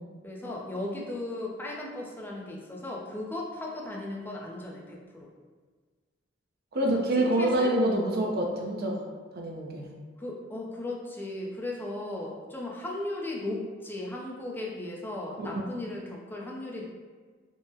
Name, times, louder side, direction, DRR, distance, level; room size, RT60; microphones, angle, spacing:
voice 1, 0.2-5.3 6.8-6.9 7.4-7.7 10.2-16.9, left 2 dB, 10° left, -2 dB, 0.4 m, -36 dB
voice 2, 6.7-9.0 9.3-9.9 15.4-15.5, right 1 dB, 55° right, 0 dB, 0.5 m, -26 dB
3.6 x 2.0 x 2.7 m, 1.5 s
head